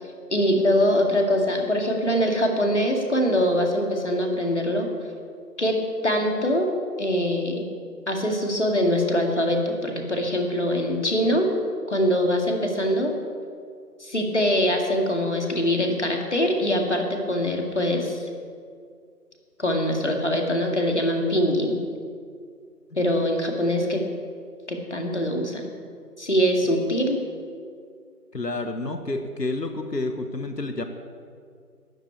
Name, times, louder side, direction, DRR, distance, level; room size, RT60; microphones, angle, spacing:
voice 1, 0.3-4.9 5.6-5.8 6.0-6.7 7.0-7.7 8.1-11.5 11.9-13.1 14.0-18.3 19.6-21.8 23.0-24.0 24.7-25.7 26.2-27.2, equal, 45° left, 2 dB, 2.1 m, -23 dB
voice 2, 28.3-30.8, left 2 dB, 90° left, 7 dB, 1.3 m, -29 dB
13.0 x 7.6 x 8.4 m, 2.2 s
figure-of-eight pair, 170°, 48 cm